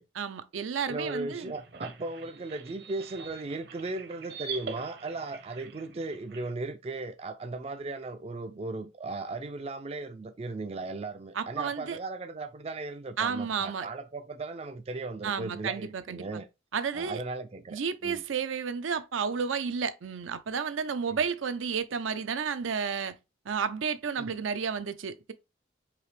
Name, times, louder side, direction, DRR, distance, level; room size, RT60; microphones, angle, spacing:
voice 1, 0.2-1.5 11.3-12.0 13.2-13.9 15.2-16.4 16.7-17.2 17.7-23.1 23.5-25.3, right 6 dB, 85° right, 0.5 m, -32 dB
voice 2, 0.9-16.5 16.9-18.2 24.2-24.3, right 3 dB, 30° right, 0.3 m, -37 dB
sound 1, 1.0-6.5, right 5 dB, 55° right, 0.8 m, -44 dB
4.9 x 2.8 x 3.2 m
head